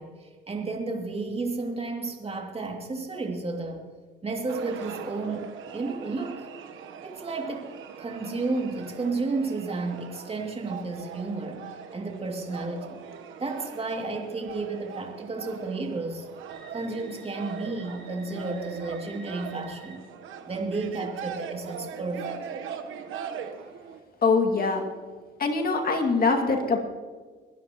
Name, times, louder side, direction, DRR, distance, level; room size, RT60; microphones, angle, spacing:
voice 1, 0.0-3.8 4.2-6.5 7.0-7.7 8.0-13.0 13.4-16.3 16.7-20.0 20.4-22.6, right 3 dB, 30° right, 2 dB, 2.7 m, -32 dB
sound 1, 4.5-24.0, right 7 dB, 85° right, 1.2 m, -41 dB
sound 2, 16.5-20.0, right 3 dB, 65° right, 5.0 m, -50 dB
voice 2, 24.2-24.9 25.4-26.8, left 4 dB, 50° left, 3 dB, 2.4 m, -23 dB
23.0 x 13.0 x 3.1 m, 1.5 s
cardioid pair, 90°, 20 cm